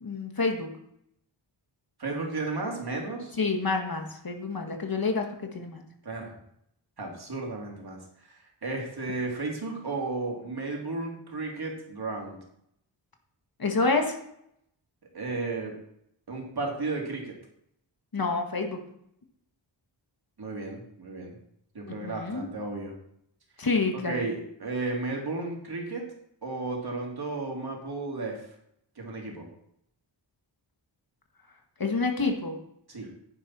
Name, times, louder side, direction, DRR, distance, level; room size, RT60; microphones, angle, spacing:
voice 1, 0.0-0.7 3.4-5.3 5.5-5.8 13.6-14.2 18.1-18.8 21.9-22.5 23.6-24.2 31.8-32.6, left 3 dB, 50° left, 4 dB, 1.8 m, -28 dB
voice 2, 2.0-3.4 6.0-6.3 7.0-8.0 8.3-12.4 15.1-15.8 16.3-17.3 20.4-21.4 21.7-22.9 23.9-26.1 26.4-28.4 29.0-29.4 32.9-33.1, right 3 dB, 55° right, -1 dB, 3.0 m, -33 dB
10.0 x 10.0 x 4.3 m, 0.73 s
wide cardioid pair, 110°, 46 cm